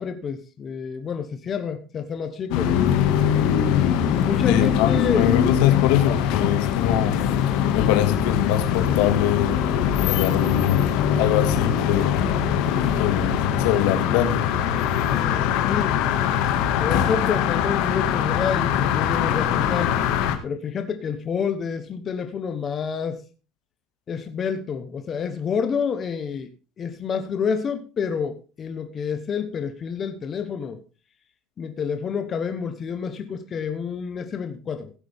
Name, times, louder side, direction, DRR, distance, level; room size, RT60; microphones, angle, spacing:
voice 1, 0.0-2.7 4.1-5.4 15.1-16.1 16.5-19.9 20.4-23.2 24.1-26.5 26.8-30.8 31.6-34.9, left 6 dB, 25° left, 8 dB, 1.0 m, -28 dB
sound 1, 2.5-20.4, left 9 dB, 65° left, 1.9 m, -22 dB
voice 2, 4.5-7.2 7.7-9.7 10.0-10.8 11.2-12.3 12.7-14.4, left 11 dB, 90° left, 8 dB, 1.9 m, -23 dB
16.0 x 8.5 x 3.5 m, 0.34 s
cardioid pair, 170°, 0 cm